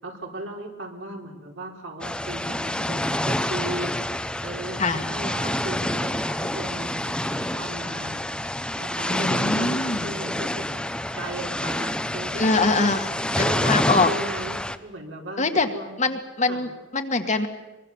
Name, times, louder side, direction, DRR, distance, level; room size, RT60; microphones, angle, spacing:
voice 1, 0.0-4.0 4.4-8.2 8.8-10.8 11.1-13.0 13.3-15.4 15.7-16.0 16.5-16.6, right 1 dB, 75° right, 1 dB, 4.3 m, -36 dB
sound 1, 2.0-14.8, left 1 dB, 5° left, 0.9 m, -27 dB
voice 2, 9.1-10.1 12.4-13.1 13.3-14.1 15.4-15.7 16.0-17.5, left 3 dB, 40° left, 6 dB, 1.8 m, -23 dB
23.0 x 23.0 x 7.3 m, 1.1 s
head